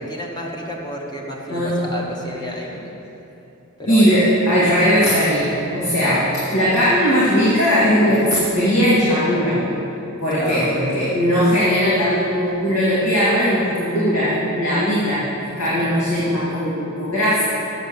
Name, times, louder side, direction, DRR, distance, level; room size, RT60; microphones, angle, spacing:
voice 1, 0.0-2.9 3.8-4.1 10.3-10.9, equal, 20° left, -1 dB, 1.0 m, -31 dB
voice 2, 1.5-1.8 3.9-9.6 10.2-17.6, equal, 75° left, -9 dB, 1.9 m, -18 dB
7.7 x 6.9 x 6.5 m, 2.9 s
head